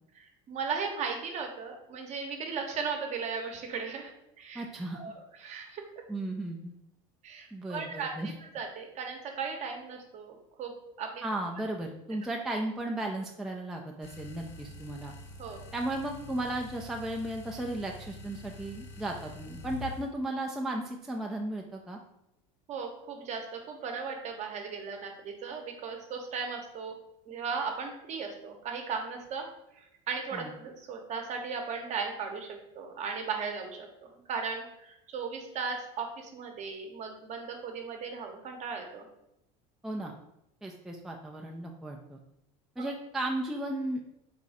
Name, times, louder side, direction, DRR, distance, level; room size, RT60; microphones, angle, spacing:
voice 1, 0.1-4.1 4.4-4.6 4.9-5.8 7.2-8.1 8.5-11.2 15.4-15.6 22.7-27.0 27.3-29.5 29.7-39.1 42.8-42.9, right 5 dB, 45° right, 3 dB, 0.8 m, -37 dB
voice 2, 4.5-5.0 6.1-6.7 7.5-8.3 11.2-15.1 15.7-22.0 30.3-30.5 39.8-40.1 40.6-42.2 42.8-44.0, right 1 dB, 5° right, 1 dB, 0.3 m, -35 dB
sound 1, 14.0-20.1, left 2 dB, 70° left, 0.8 m, -46 dB
4.1 x 2.3 x 4.0 m, 0.82 s
supercardioid pair, 110°, 17 cm